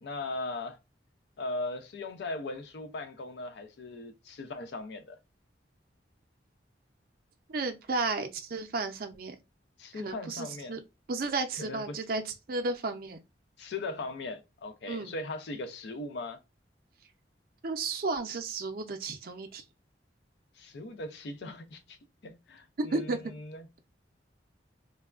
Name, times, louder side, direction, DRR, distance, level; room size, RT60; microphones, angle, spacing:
voice 1, 0.0-0.8 1.4-5.2 9.8-10.8 11.6-12.0 13.6-16.4 20.6-22.0 22.2-23.7, left 2 dB, 65° left, 0.5 m, -39 dB
voice 2, 7.5-9.4 10.0-10.8 11.1-13.2 14.9-15.1 17.6-19.6 22.8-23.3, right 3 dB, 50° right, 0.5 m, -33 dB
3.3 x 2.2 x 2.3 m
head